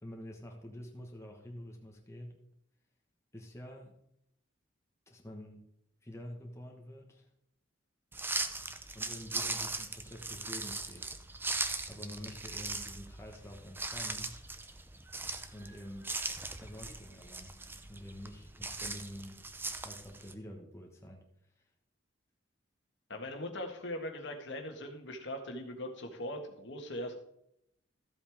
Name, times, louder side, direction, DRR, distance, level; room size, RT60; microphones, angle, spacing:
voice 1, 0.0-2.4 3.3-4.0 5.1-5.6 6.0-7.3 8.9-11.1 11.5-14.4 15.5-16.2 16.6-17.6 17.9-19.4 19.7-21.2 21.6-21.7, equal, 15° left, 1 dB, 1.3 m, -47 dB
sound 1, 8.1-20.3, right 3 dB, 10° right, 0.6 m, -39 dB
voice 2, 23.1-27.1, left 1 dB, 70° left, 4 dB, 1.6 m, -40 dB
14.0 x 7.9 x 3.6 m, 0.76 s
head